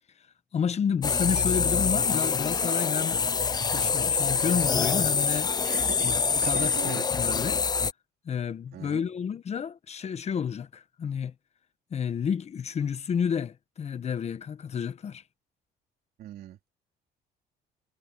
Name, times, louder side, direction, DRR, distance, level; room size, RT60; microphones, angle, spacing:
voice 1, 0.5-3.2 3.6-5.5 6.0-6.2 6.5-7.6 8.2-11.3 11.9-15.2, left 7 dB, 40° left, 1.1 m, -30 dB
sound 1, 1.0-7.9, left 5 dB, 25° left, 0.6 m, -25 dB
voice 2, 5.7-6.2 6.4-7.0 8.7-9.1 16.2-16.6, right 12 dB, 65° right, 3.8 m, -39 dB
cardioid pair, 110°, 17 cm